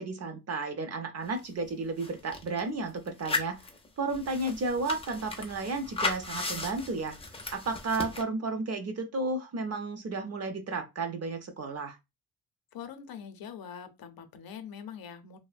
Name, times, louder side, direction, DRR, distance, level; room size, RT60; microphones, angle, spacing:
voice 1, 0.0-3.6 4.0-7.1 7.5-12.0, right 3 dB, 40° right, 0.5 m, -33 dB
sound 1, 1.4-1.5 1.7-2.6 3.1-8.2, left 3 dB, 15° left, 0.3 m, -36 dB
voice 2, 12.7-15.4, left 8 dB, 65° left, 0.5 m, -43 dB
2.8 x 2.1 x 2.4 m
wide cardioid pair, 150°, 39 cm